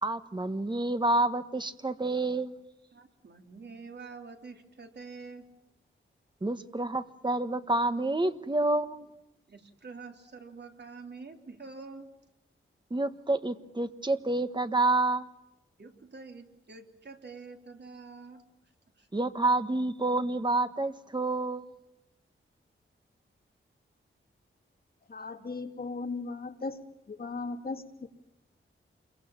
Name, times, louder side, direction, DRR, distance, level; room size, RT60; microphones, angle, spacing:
voice 1, 0.0-2.5 6.4-9.1 12.9-15.3 19.1-21.7, right 2 dB, 20° right, 1.3 m, -28 dB
voice 2, 2.9-5.4 9.5-12.1 15.8-18.4 19.0-19.1, right 4 dB, 55° right, 3.3 m, -46 dB
voice 3, 25.1-26.8 27.1-28.1, left 3 dB, 45° left, 2.5 m, -37 dB
27.5 x 23.0 x 7.3 m
wide cardioid pair, 130°, 21 cm